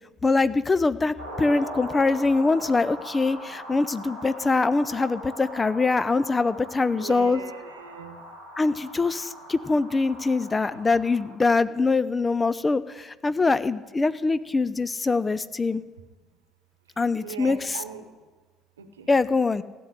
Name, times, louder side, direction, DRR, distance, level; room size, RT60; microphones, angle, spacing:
voice 1, 0.2-7.4 8.6-15.8 17.0-17.8 19.1-19.6, left 3 dB, 20° left, 16 dB, 0.6 m, -23 dB
sound 1, 1.2-11.4, equal, 90° left, 4.9 m, -40 dB
voice 2, 6.9-8.2 17.2-18.0 18.8-19.1, right 6 dB, 75° right, 9 dB, 1.1 m, -39 dB
15.0 x 7.7 x 10.0 m, 1.3 s
figure-of-eight pair, 55°, 0 cm